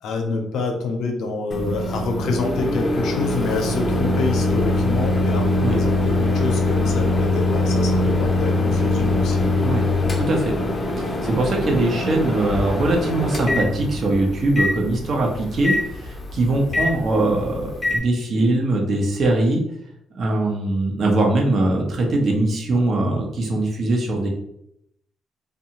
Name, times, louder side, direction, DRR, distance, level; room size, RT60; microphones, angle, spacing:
voice 1, 0.0-9.5, left 3 dB, 80° left, 3 dB, 0.6 m, -27 dB
Microwave oven, 1.5-18.0, left 2 dB, 30° left, 0.5 m, -22 dB
voice 2, 10.2-10.6 11.0-19.6 20.1-24.3, right 2 dB, 55° right, 1 dB, 0.7 m, -21 dB
2.6 x 2.2 x 2.9 m, 0.77 s
cardioid pair, 90°, 0 cm